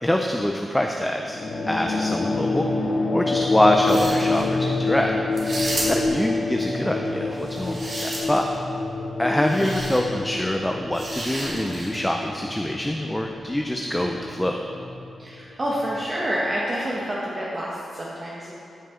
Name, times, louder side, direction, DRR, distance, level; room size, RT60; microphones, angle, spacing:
voice 1, 0.0-1.4 1.7-2.7 3.1-5.2 5.9-8.5 9.2-14.6, left 1 dB, 10° left, 2 dB, 0.5 m, -24 dB
sound 1, 1.2-16.1, left 3 dB, 60° left, 1.1 m, -28 dB
sound 2, 3.7-4.4 5.3-6.2 7.4-8.5 9.5-10.0 10.9-12.0, right 1 dB, 50° right, 2.0 m, -32 dB
voice 2, 15.2-18.5, equal, 30° right, -5 dB, 1.1 m, -28 dB
14.0 x 5.5 x 3.7 m, 2.6 s
wide cardioid pair, 110°, 0 cm